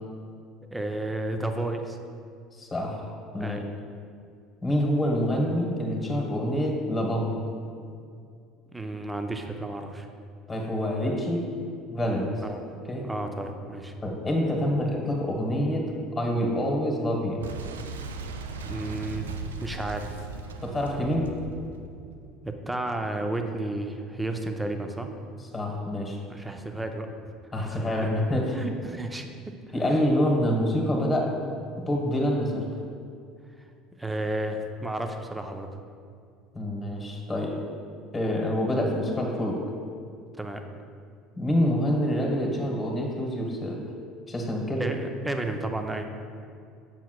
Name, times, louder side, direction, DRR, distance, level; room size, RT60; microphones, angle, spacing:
voice 1, 0.7-2.0 3.4-3.6 8.7-10.1 12.4-12.6 13.0-14.0 18.6-20.3 22.4-25.1 26.3-27.1 27.6-28.1 28.4-29.3 34.0-35.7 40.4-40.6 44.8-46.1, right 2 dB, 10° right, 5 dB, 0.6 m, -32 dB
voice 2, 2.6-3.6 4.6-7.3 10.5-11.4 11.9-12.4 12.9-13.0 14.0-15.8 16.1-17.4 20.6-21.2 25.5-26.2 27.5-28.5 29.7-31.3 31.9-32.6 36.5-37.5 38.1-39.6 41.4-43.8 44.3-44.8, equal, 20° left, -1 dB, 1.4 m, -26 dB
Boom, 17.4-23.0, right 4 dB, 75° right, 0.4 m, -38 dB
7.3 x 6.9 x 2.4 m, 2.4 s
figure-of-eight pair, 65°, 0 cm